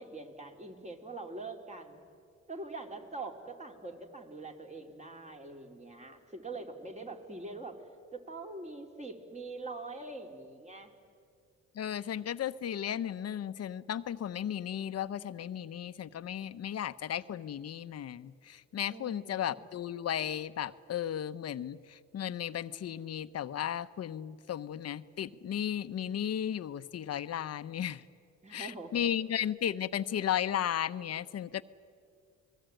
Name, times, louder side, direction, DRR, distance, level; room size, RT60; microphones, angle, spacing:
voice 1, 0.0-2.0 2.5-7.8 8.1-10.9 18.9-19.6 28.4-29.1, right 3 dB, 25° right, 3 dB, 3.5 m, -44 dB
voice 2, 11.7-28.0 28.5-31.6, left 10 dB, 55° left, 13 dB, 0.9 m, -35 dB
28.5 x 20.5 x 9.2 m, 2.3 s
cardioid pair, 90°, 30 cm